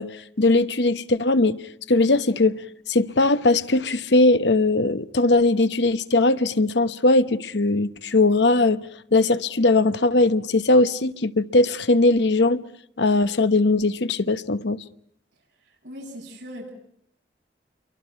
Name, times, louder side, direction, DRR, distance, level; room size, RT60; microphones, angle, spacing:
voice 1, 0.0-1.6 1.9-2.6 2.9-8.8 9.1-12.6 13.0-14.8, left 2 dB, 80° left, 1.0 m, -20 dB
voice 2, 15.8-16.7, equal, 80° right, 7.6 m, -38 dB
29.0 x 23.5 x 5.8 m
head